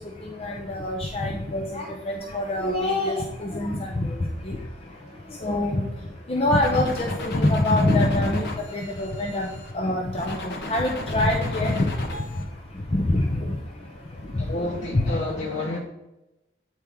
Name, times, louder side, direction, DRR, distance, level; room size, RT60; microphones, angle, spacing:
voice 1, 0.4-3.9 4.5-4.6 5.4-5.8 6.3-8.5 8.7-9.5 9.7-11.9 13.1-13.2 14.9-15.0, left 1 dB, 35° left, 1 dB, 0.6 m, -24 dB
sound 1, 6.5-9.7 10.1-12.4, left 2 dB, 65° left, 1.1 m, -36 dB
voice 2, 14.4-15.8, left 2 dB, 90° left, -2 dB, 1.0 m, -30 dB
8.4 x 4.5 x 3.5 m, 0.94 s
head